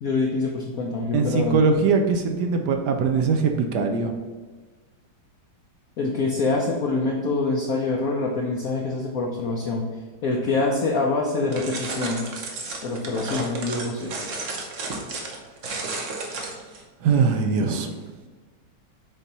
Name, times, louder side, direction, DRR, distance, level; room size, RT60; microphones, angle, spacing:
voice 1, 0.0-1.6 6.0-9.9 10.2-12.3 12.8-14.1, left 3 dB, 60° left, -1 dB, 1.0 m, -25 dB
voice 2, 1.1-4.1 17.0-18.1, right 5 dB, 70° right, 4 dB, 1.0 m, -22 dB
sound 1, 11.5-16.8, right 3 dB, 50° right, 1.0 m, -33 dB
7.2 x 2.9 x 5.3 m, 1.3 s
omnidirectional pair, 2.1 m